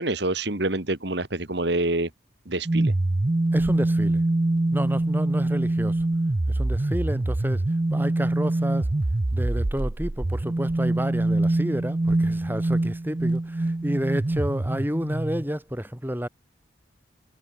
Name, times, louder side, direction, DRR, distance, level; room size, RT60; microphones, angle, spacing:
voice 1, 0.0-2.1 2.5-2.9, right 2 dB, 60° right, 2.5 m, -26 dB
sound 1, 2.6-15.5, right 2 dB, 25° right, 0.5 m, -24 dB
voice 2, 3.5-4.2 4.7-6.1 6.5-7.6 7.9-8.9 9.3-16.3, equal, 10° right, 5.9 m, -30 dB
head